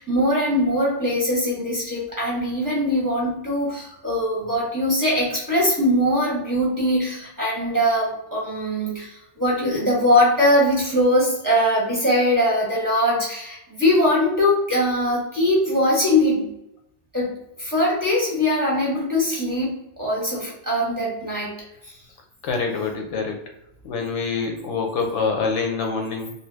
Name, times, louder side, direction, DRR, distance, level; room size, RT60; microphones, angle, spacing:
voice 1, 0.0-16.5 17.1-17.3 17.6-21.5, left 1 dB, 20° right, -4 dB, 0.7 m, -21 dB
voice 2, 22.4-23.4 23.8-26.3, left 4 dB, 75° left, 2 dB, 0.9 m, -25 dB
2.7 x 2.3 x 3.2 m, 0.84 s
omnidirectional pair, 1.2 m